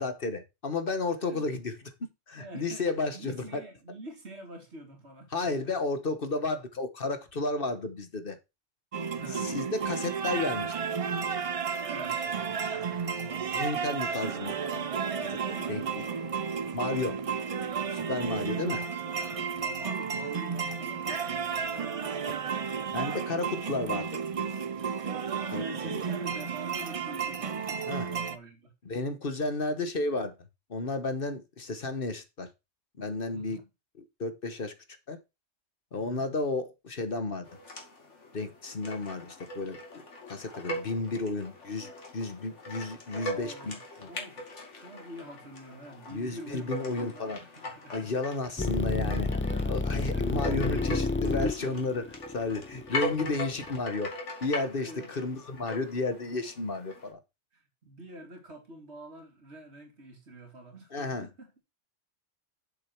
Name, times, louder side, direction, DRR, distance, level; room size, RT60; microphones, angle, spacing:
voice 1, 0.0-1.7 2.0-3.4 5.3-8.4 9.3-10.7 13.5-14.9 15.3-16.1 16.7-17.2 17.9-18.8 22.2-22.3 22.9-24.2 25.5-26.1 27.9-28.1 28.8-30.3 30.7-32.5 33.0-33.6 34.2-34.7 35.1-35.2 35.9-37.5 38.3-40.0 40.3-44.1 46.1-47.4 47.9-49.3 49.7-54.1 54.4-57.2 60.9-61.3, left 3 dB, 50° left, 1.4 m, -32 dB
voice 2, 2.4-2.9 3.1-5.7 9.1-9.5 11.8-13.7 15.6-16.0 16.9-17.4 18.1-18.5 19.5-22.3 25.0-28.7 33.3-33.7 35.9-36.3 43.1-44.5 44.7-48.1 49.5-49.9 50.1-51.8 54.8-55.1 57.5-61.6, right 1 dB, 65° right, 2.8 m, -47 dB
sound 1, 8.9-28.4, right 6 dB, 40° right, 0.5 m, -32 dB
sound 2, 37.4-57.1, left 1 dB, 90° left, 2.6 m, -41 dB
sound 3, 48.6-53.7, left 3 dB, 15° left, 0.4 m, -30 dB
7.8 x 6.8 x 4.5 m
omnidirectional pair, 1.2 m